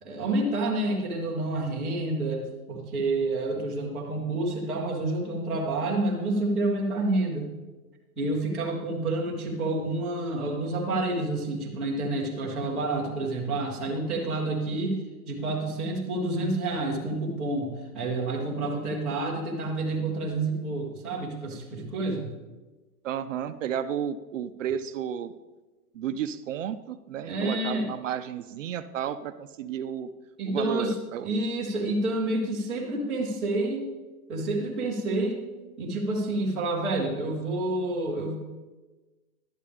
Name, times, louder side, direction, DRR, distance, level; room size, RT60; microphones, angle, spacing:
voice 1, 0.0-7.5 8.2-22.3 27.3-27.9 30.4-30.9 31.2-33.9 34.3-35.4 35.8-38.4, right 2 dB, ahead, -11 dB, 0.4 m, -29 dB
voice 2, 23.0-25.3 25.9-30.1 30.5-31.3, right 9 dB, 55° right, 12 dB, 0.5 m, -32 dB
11.5 x 8.5 x 3.4 m, 1.2 s
hypercardioid pair, 155°, 47 cm